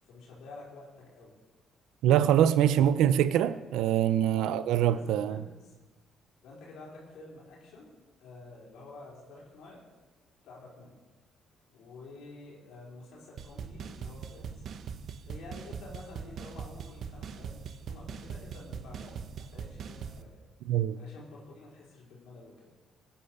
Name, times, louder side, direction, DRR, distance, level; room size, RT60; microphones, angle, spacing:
voice 1, 0.0-1.4 2.7-2.9 4.3-5.7 6.4-9.8 10.4-10.9 11.7-14.6 15.2-20.4 21.0-22.7, left 3 dB, 75° left, 4.8 m, -49 dB
voice 2, 2.0-5.4 20.7-21.0, right 11 dB, 85° right, 0.7 m, -24 dB
sound 1, 13.4-20.2, right 6 dB, 45° right, 0.9 m, -41 dB
20.0 x 10.0 x 6.7 m
cardioid pair, 155°, 0 cm